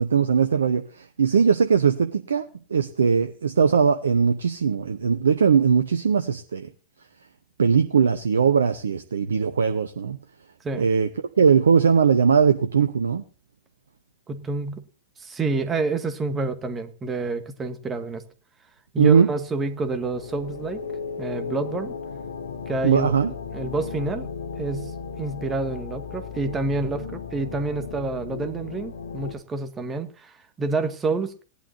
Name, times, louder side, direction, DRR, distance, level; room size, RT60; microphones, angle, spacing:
voice 1, 0.0-2.4 2.7-6.7 7.6-10.2 10.8-11.1 11.4-13.2 19.0-19.3 22.8-23.3, right 6 dB, 70° right, 0.9 m, -20 dB
voice 2, 14.3-14.8 15.2-18.2 18.9-20.8 21.2-21.9 22.7-23.3 23.5-24.3 24.6-24.9 25.2-31.4, right 3 dB, 20° right, 1.8 m, -28 dB
sound 1, 19.5-29.3, left 5 dB, 70° left, 1.8 m, -35 dB
18.5 x 11.5 x 2.7 m
figure-of-eight pair, 90°, 0 cm